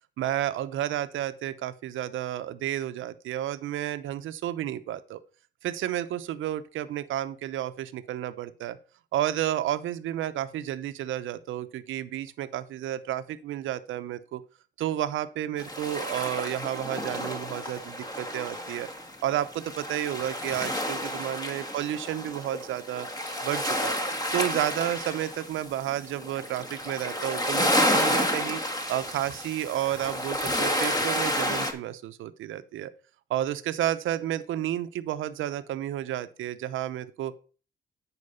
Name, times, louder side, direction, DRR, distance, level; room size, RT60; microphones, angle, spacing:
voice 1, 0.2-5.2 5.6-8.8 9.1-14.4 14.8-18.9 19.2-23.1 23.4-24.0 24.3-28.6 28.9-32.9 33.3-37.3, right 12 dB, 80° right, 13 dB, 0.7 m, -31 dB
sound 1, 15.6-31.7, equal, 20° left, 1.6 m, -30 dB
9.7 x 4.7 x 5.5 m, 0.39 s
cardioid pair, 90°, 20 cm